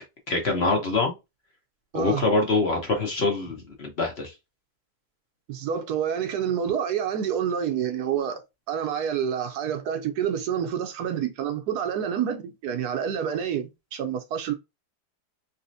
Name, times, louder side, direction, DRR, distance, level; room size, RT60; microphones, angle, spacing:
voice 1, 0.3-1.1 1.9-4.3, left 3 dB, 45° left, 1.2 m, -24 dB
voice 2, 5.5-8.4 8.7-14.5, right 8 dB, 75° right, 1.2 m, -28 dB
4.2 x 3.0 x 2.6 m
omnidirectional pair, 1.7 m